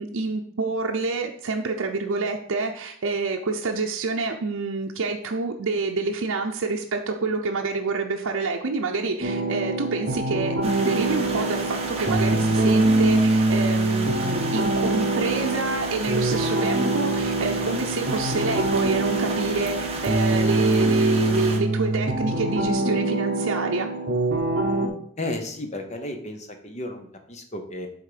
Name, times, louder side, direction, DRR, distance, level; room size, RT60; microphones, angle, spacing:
voice 1, 0.0-23.9, right 3 dB, 75° right, 1 dB, 0.6 m, -27 dB
sound 1, 9.2-24.9, right 2 dB, 50° right, 0.9 m, -24 dB
sound 2, 10.6-21.6, right 3 dB, 30° right, 1.1 m, -34 dB
voice 2, 25.2-27.9, left 1 dB, 30° left, 5 dB, 0.9 m, -33 dB
8.1 x 3.7 x 5.0 m, 0.65 s
head